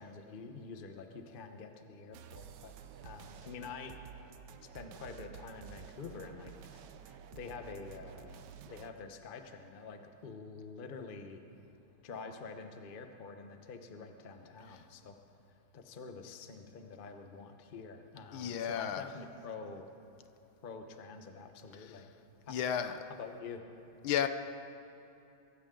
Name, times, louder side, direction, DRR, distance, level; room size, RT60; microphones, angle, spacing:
voice 1, 0.0-2.7 3.0-3.9 4.7-8.4 8.7-11.4 12.0-15.2 15.7-19.9 20.6-22.1 22.5-23.6, left 4 dB, 40° left, 6 dB, 0.7 m, -47 dB
sound 1, 2.1-8.9, right 9 dB, 65° right, 1.1 m, -51 dB
voice 2, 18.3-19.1 21.8-21.9 22.5-22.9 24.0-24.3, left 9 dB, 75° left, 9 dB, 1.5 m, -33 dB
23.5 x 16.0 x 3.8 m, 3.0 s
omnidirectional pair, 2.4 m